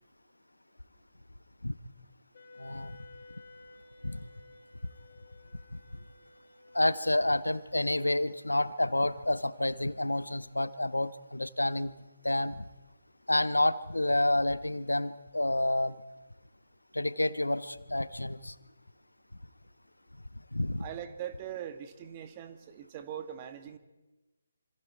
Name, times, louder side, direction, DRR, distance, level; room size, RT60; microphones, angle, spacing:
Wind instrument woodwind instrument, 2.3-7.5, left 2 dB, 50° left, 3.7 m, -55 dB
voice 1, 2.6-2.9 4.0-4.3 6.7-11.9 12.2-12.7 13.3-16.0 16.9-18.5 20.5-20.8, left 1 dB, 90° left, 16 dB, 0.9 m, -29 dB
voice 2, 20.8-23.8, right 10 dB, 25° right, 10 dB, 1.4 m, -41 dB
27.0 x 26.0 x 4.7 m, 1.1 s
figure-of-eight pair, 145°, 0 cm